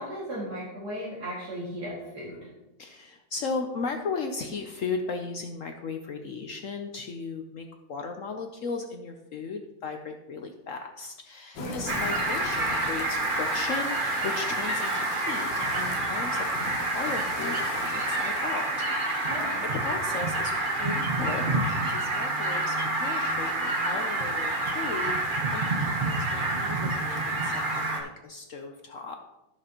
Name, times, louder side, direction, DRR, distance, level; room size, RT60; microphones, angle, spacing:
voice 1, 0.0-2.5 11.6-11.8 19.3-19.6, equal, 65° right, -7 dB, 2.7 m, -36 dB
voice 2, 2.8-18.7 19.1-19.3 19.7-29.2, left 4 dB, 60° left, 4 dB, 0.9 m, -36 dB
sound 1, 11.6-18.9, left 5 dB, 85° left, 1.5 m, -40 dB
Fowl, 11.9-28.0, right 2 dB, 35° right, 1.1 m, -28 dB
14.5 x 6.2 x 3.0 m, 0.96 s
omnidirectional pair, 1.9 m